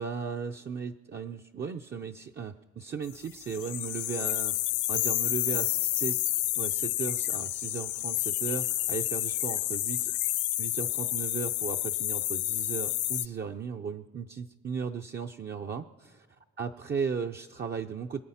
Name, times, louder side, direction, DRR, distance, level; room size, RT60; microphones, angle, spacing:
voice 1, 0.0-4.6 4.9-6.2 6.6-10.1 10.6-16.2 16.6-18.2, right 6 dB, 35° right, 3 dB, 0.6 m, -36 dB
sound 1, 3.4-13.3, left 15 dB, 75° left, 0.5 m, -30 dB
25.5 x 8.7 x 5.7 m, 1.5 s
cardioid pair, 90°, 30 cm